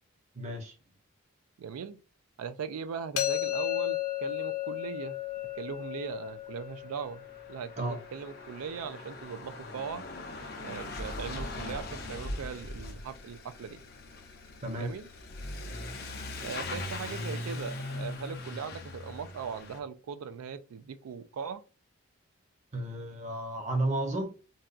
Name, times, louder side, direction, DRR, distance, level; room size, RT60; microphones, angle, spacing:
voice 1, 0.3-0.7 7.8-8.0 14.6-14.9 22.7-24.2, right 1 dB, 35° right, 0.7 m, -32 dB
voice 2, 1.6-2.0 2.4-5.2 5.6-10.1 10.6-13.8 14.8-15.1 16.4-21.6, right 6 dB, 85° right, 0.3 m, -39 dB
sound 1, 3.2-9.0, left 14 dB, 85° left, 0.8 m, -35 dB
Truck / Accelerating revving vroom, 6.1-6.2 6.4-19.8, left 2 dB, 45° left, 0.5 m, -40 dB
3.9 x 2.2 x 2.4 m
head